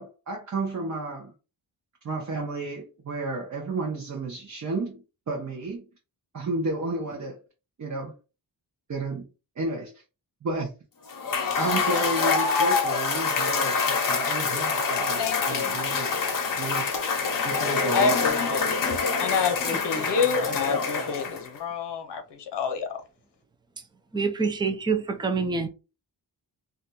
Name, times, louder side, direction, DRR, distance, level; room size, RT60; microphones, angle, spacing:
voice 1, 0.0-1.3 2.0-5.9 6.3-7.4 7.8-8.1 8.9-9.3 9.6-9.9 10.4-10.7 11.5-16.1 16.6-16.8 17.4-18.2, right 2 dB, 45° right, 0.8 m, -32 dB
Cheering / Applause / Crowd, 11.1-21.6, left 5 dB, 50° left, 0.7 m, -26 dB
voice 2, 15.2-15.8 17.9-18.9 19.2-23.0, left 5 dB, 80° left, 0.8 m, -28 dB
voice 3, 19.7-20.1 24.1-25.7, right 4 dB, 10° right, 0.3 m, -27 dB
2.5 x 2.3 x 4.0 m
wide cardioid pair, 165°, 41 cm